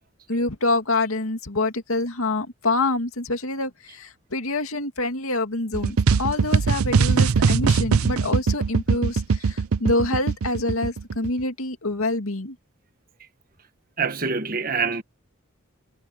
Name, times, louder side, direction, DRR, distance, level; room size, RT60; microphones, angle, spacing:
voice 1, 0.3-12.6, left 2 dB, 85° left, 2.3 m, -26 dB
sound 1, 5.7-11.4, right 5 dB, 90° right, 0.6 m, -21 dB
voice 2, 14.0-15.0, right 5 dB, 40° right, 1.6 m, -25 dB
head